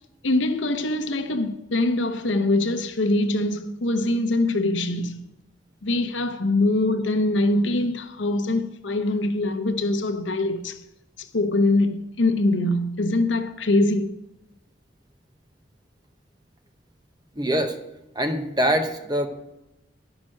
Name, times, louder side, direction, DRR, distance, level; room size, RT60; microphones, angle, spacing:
voice 1, 0.2-5.2 5.8-10.8 11.2-14.2, left 2 dB, 75° left, 0.8 m, -23 dB
voice 2, 17.4-17.7 18.1-19.3, equal, 20° right, 0.9 m, -23 dB
10.5 x 6.0 x 6.4 m
head